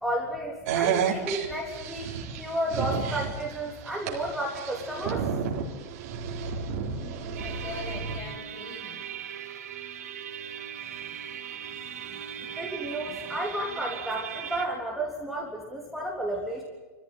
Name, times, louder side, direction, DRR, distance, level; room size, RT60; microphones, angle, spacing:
voice 1, 0.0-2.1 2.4-5.2 12.6-16.6, right 1 dB, ahead, -2 dB, 3.5 m, -32 dB
sound 1, 0.7-8.2, right 7 dB, 60° right, 4.2 m, -32 dB
voice 2, 6.9-9.0 10.8-11.4 11.7-12.6 13.1-13.4, left 4 dB, 30° left, 3 dB, 7.1 m, -45 dB
sound 2, 7.4-14.7, right 9 dB, 90° right, 4.7 m, -39 dB
26.0 x 15.5 x 9.4 m, 1.3 s
supercardioid pair, 130°, 8 cm